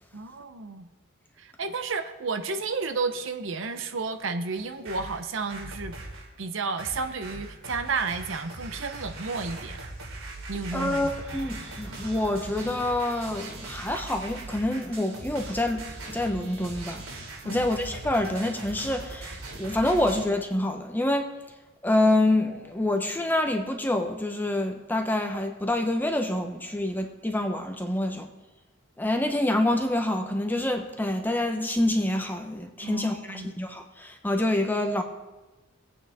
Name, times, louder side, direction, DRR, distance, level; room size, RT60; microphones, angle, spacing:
voice 1, 0.1-0.9 1.4-5.9 6.4-9.8 10.5-11.0 17.4-17.7 32.8-33.5, right 4 dB, 65° right, 8 dB, 0.8 m, -32 dB
sound 1, 4.6-6.3 6.8-20.3, right 2 dB, 90° right, 2.7 m, -40 dB
voice 2, 10.7-17.1 17.4-21.3 21.8-28.3 29.0-35.0, left 1 dB, 10° left, 5 dB, 0.9 m, -27 dB
23.0 x 8.6 x 3.5 m, 1.1 s
head